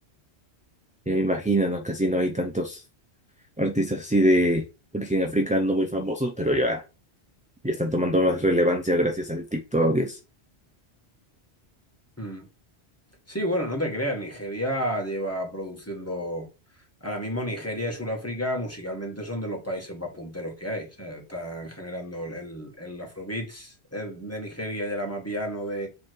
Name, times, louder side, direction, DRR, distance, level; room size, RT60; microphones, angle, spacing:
voice 1, 1.1-2.8 3.6-4.6 4.9-6.8 7.6-10.2, equal, 10° right, 0.5 m, -23 dB
voice 2, 13.3-16.5 17.0-25.9, equal, 15° left, 1.8 m, -31 dB
7.2 x 3.3 x 4.6 m
omnidirectional pair, 1.1 m